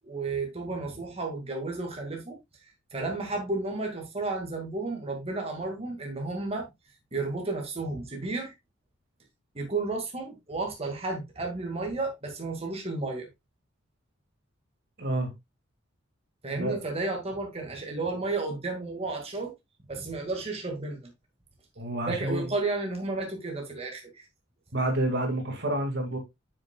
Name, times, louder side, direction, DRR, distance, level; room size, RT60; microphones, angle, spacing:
voice 1, 0.0-2.4 2.9-6.7 7.1-8.5 9.5-13.3 16.4-19.5 19.9-21.1 22.0-24.2, right 3 dB, 30° right, 2.0 m, -32 dB
voice 2, 15.0-15.3 16.5-16.8 21.8-22.5 24.7-26.2, right 1 dB, 60° right, 2.2 m, -29 dB
9.3 x 6.6 x 2.4 m
head